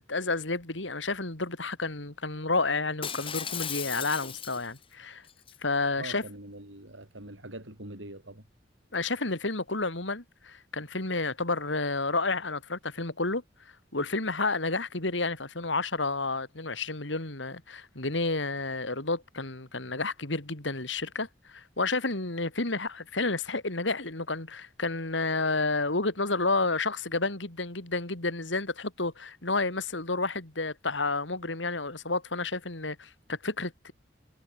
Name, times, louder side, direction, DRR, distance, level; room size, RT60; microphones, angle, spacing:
voice 1, 0.0-5.2 5.6-6.2 8.9-13.4 13.9-33.9, left 3 dB, 80° left, 3.3 m, -30 dB
Shatter, 3.0-4.8 5.3-5.6, left 8 dB, 30° left, 1.9 m, -36 dB
voice 2, 6.0-8.4, right 1 dB, 85° right, 6.9 m, -43 dB
head